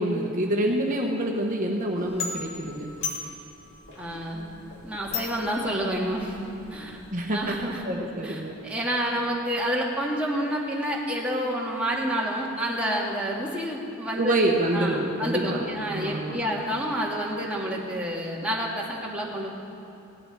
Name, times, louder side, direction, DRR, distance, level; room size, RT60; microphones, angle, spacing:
voice 1, 0.0-2.9 7.1-8.6 14.2-15.6 15.9-16.4, right 1 dB, 40° right, 0 dB, 1.1 m, -27 dB
sound 1, 2.0-7.7, left 5 dB, 60° left, 2.3 m, -38 dB
voice 2, 4.0-4.6 4.8-6.4 6.7-7.0 7.3-7.8 8.2-14.3 14.7-19.5, equal, 5° right, -4 dB, 1.8 m, -29 dB
17.5 x 11.0 x 4.7 m, 2.9 s
head